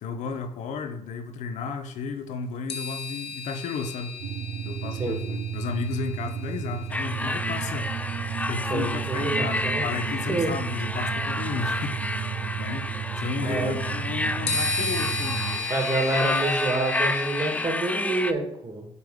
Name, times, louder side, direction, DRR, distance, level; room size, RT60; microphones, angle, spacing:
voice 1, 0.0-4.2 4.6-7.9 8.5-12.0 12.6-12.8 13.2-15.7, left 5 dB, 80° left, 7 dB, 0.7 m, -33 dB
sound 1, 2.7-8.3 9.6-9.7 14.5-17.7, left 4 dB, 55° left, 1.2 m, -34 dB
sound 2, 4.2-15.6, right 9 dB, 70° right, 0.4 m, -33 dB
sound 3, 6.9-18.3, left 2 dB, 10° left, 0.4 m, -30 dB
voice 2, 8.7-9.9 10.3-10.5 13.4-13.7 15.7-18.9, right 2 dB, 40° right, 2 dB, 2.2 m, -27 dB
6.7 x 3.5 x 4.9 m, 0.73 s
supercardioid pair, 60°, 12 cm